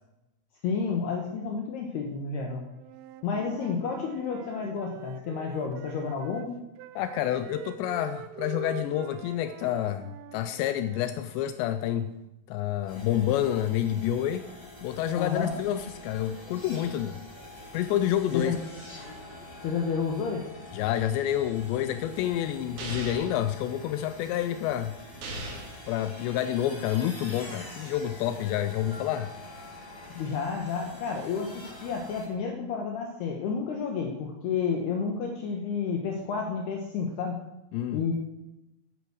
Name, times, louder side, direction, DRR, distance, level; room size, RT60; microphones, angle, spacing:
voice 1, 0.6-2.6 3.2-6.6 15.2-15.5 18.3-18.6 19.6-20.4 30.1-37.4 37.9-38.1, left 5 dB, 65° left, 1 dB, 2.9 m, -30 dB
Wind instrument woodwind instrument, 2.8-6.5 6.8-11.2, right 10 dB, 80° right, 3.2 m, -45 dB
voice 2, 7.0-12.1 12.5-14.4 14.8-17.2 17.7-18.6 20.7-25.0 25.9-29.3 37.7-38.0, left 11 dB, 90° left, 10 dB, 2.5 m, -28 dB
sound 1, 12.9-32.3, left 1 dB, 5° left, 2.3 m, -46 dB
sound 2, 22.8-23.4 25.2-25.8, right 2 dB, 50° right, 2.5 m, -37 dB
16.5 x 9.2 x 6.3 m, 0.92 s
omnidirectional pair, 5.8 m